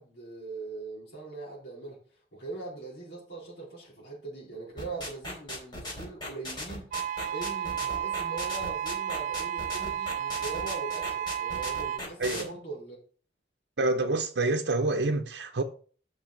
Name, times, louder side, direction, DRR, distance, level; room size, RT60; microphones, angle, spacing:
voice 1, 0.0-13.0, right 3 dB, 80° left, 4.1 m, -41 dB
sound 1, 4.8-12.4, left 1 dB, 25° left, 4.1 m, -37 dB
sound 2, 6.9-12.0, right 10 dB, 50° right, 0.3 m, -32 dB
voice 2, 13.8-15.6, right 2 dB, 75° right, 0.7 m, -27 dB
6.1 x 6.0 x 6.5 m
head